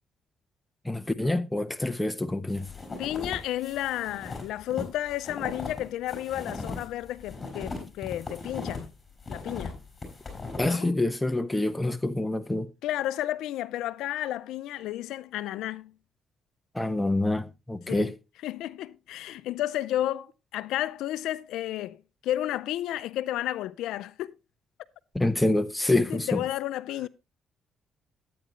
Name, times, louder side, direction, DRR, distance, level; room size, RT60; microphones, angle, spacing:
voice 1, 0.8-2.7 10.6-12.7 16.7-18.1 25.1-26.4, left 2 dB, 10° left, 0.9 m, -26 dB
sound 1, 2.5-8.8 9.2-10.7, left 3 dB, 25° left, 5.4 m, -38 dB
voice 2, 3.0-8.9 9.3-9.8 10.6-10.9 12.8-15.9 17.9-18.1 18.4-24.3 26.1-27.1, left 13 dB, 90° left, 0.4 m, -32 dB
11.5 x 9.3 x 3.0 m
cardioid pair, 90°, 0 cm